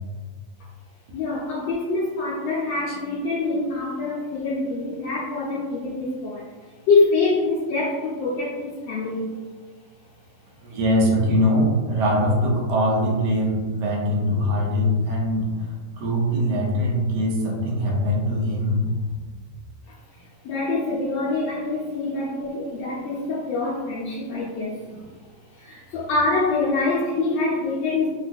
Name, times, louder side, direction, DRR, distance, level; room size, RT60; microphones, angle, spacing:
voice 1, 1.1-6.5 6.9-9.4 19.9-20.0 20.4-25.1 25.5-28.1, left 3 dB, 85° left, -6 dB, 1.3 m, -25 dB
voice 2, 10.6-19.0, equal, 70° right, -2 dB, 1.3 m, -22 dB
3.5 x 2.2 x 2.5 m, 1.5 s
omnidirectional pair, 2.0 m